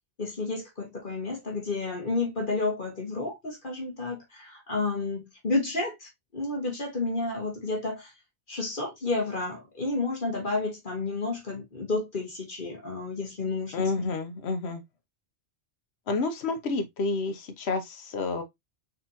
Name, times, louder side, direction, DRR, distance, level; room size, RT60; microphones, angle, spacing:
voice 1, 0.2-8.1 8.5-13.9, left 3 dB, 50° left, 1.7 m, -31 dB
voice 2, 13.7-14.8 16.1-18.4, left 3 dB, 70° left, 1.2 m, -29 dB
4.3 x 4.2 x 2.7 m
omnidirectional pair, 1.2 m